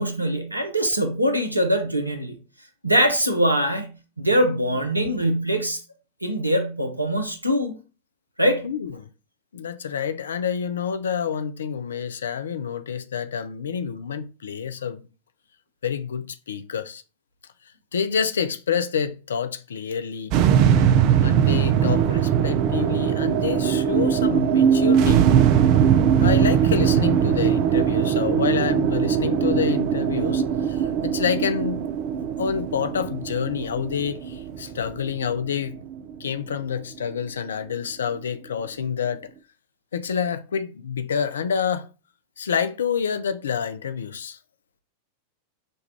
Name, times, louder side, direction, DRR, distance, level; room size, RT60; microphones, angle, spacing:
voice 1, 0.0-2.4 2.8-5.8 6.2-7.8 8.4-8.7, equal, 85° right, 0.6 m, -23 dB
voice 2, 8.6-9.1 9.5-15.1 15.8-17.0 17.9-20.3 21.2-25.3 26.2-31.8 32.4-35.8 36.2-39.3 39.9-41.9 42.4-44.4, left 7 dB, 65° left, 0.3 m, -28 dB
sound 1, 20.3-36.7, right 8 dB, 45° right, 0.3 m, -20 dB
5.2 x 2.3 x 2.7 m
figure-of-eight pair, 90°, 0 cm